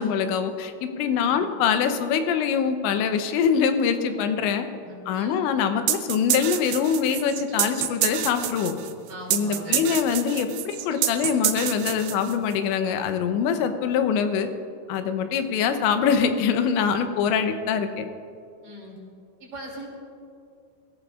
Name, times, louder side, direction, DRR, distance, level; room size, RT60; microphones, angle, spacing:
voice 1, 0.0-4.7 5.1-8.7 9.3-14.5 14.9-18.1, left 7 dB, 90° left, 7 dB, 3.1 m, -24 dB
voice 2, 4.8-5.4 9.1-9.9 17.3-17.4 18.6-19.0 19.4-19.9, right 1 dB, 50° right, -3 dB, 4.0 m, -40 dB
sound 1, 5.9-12.6, right 12 dB, 90° right, 3.0 m, -27 dB
24.0 x 15.0 x 2.4 m, 2.4 s
omnidirectional pair, 5.1 m